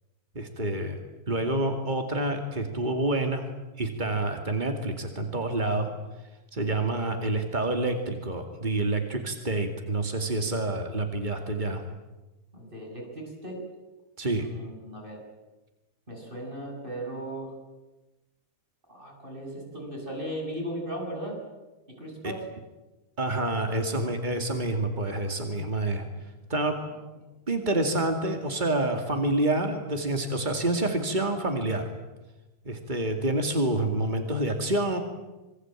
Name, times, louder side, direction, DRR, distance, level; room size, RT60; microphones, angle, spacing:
voice 1, 0.3-1.0 1.3-3.5 3.8-5.9 6.5-11.8 14.2-14.5 22.2-22.3 23.2-26.1 26.5-26.8 27.5-31.9 32.6-35.0, right 2 dB, 30° right, 5 dB, 0.9 m, -28 dB
voice 2, 12.5-13.6 14.3-15.2 16.1-17.5 18.9-21.4 21.9-22.4 26.8-26.9, right 1 dB, 10° right, 1 dB, 7.9 m, -37 dB
27.0 x 23.5 x 8.9 m, 1.1 s
omnidirectional pair, 4.9 m